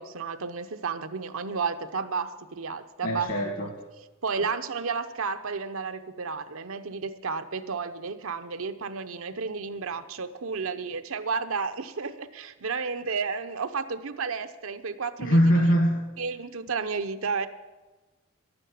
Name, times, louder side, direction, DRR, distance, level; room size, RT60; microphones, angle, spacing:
voice 1, 0.0-3.6 4.2-15.4 16.2-17.5, right 5 dB, 80° right, 10 dB, 0.8 m, -32 dB
voice 2, 3.0-3.7 15.2-16.1, equal, 60° left, 1 dB, 1.8 m, -22 dB
11.5 x 9.8 x 8.5 m, 1.2 s
head